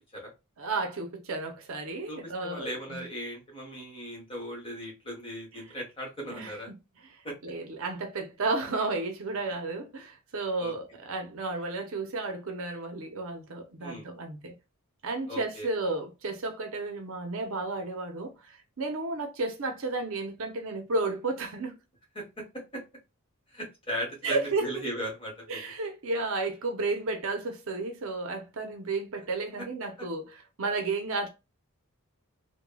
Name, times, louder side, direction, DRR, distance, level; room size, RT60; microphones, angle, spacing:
voice 1, 0.6-3.1 6.3-6.8 7.1-14.5 15.0-21.8 24.2-24.7 25.5-31.3, right 3 dB, 65° right, 0.6 m, -33 dB
voice 2, 2.1-6.7 7.2-7.3 10.6-10.7 13.8-14.1 15.3-15.7 22.1-22.2 22.7-22.8 23.5-25.6, equal, 25° left, 1.4 m, -37 dB
3.2 x 2.2 x 2.2 m
head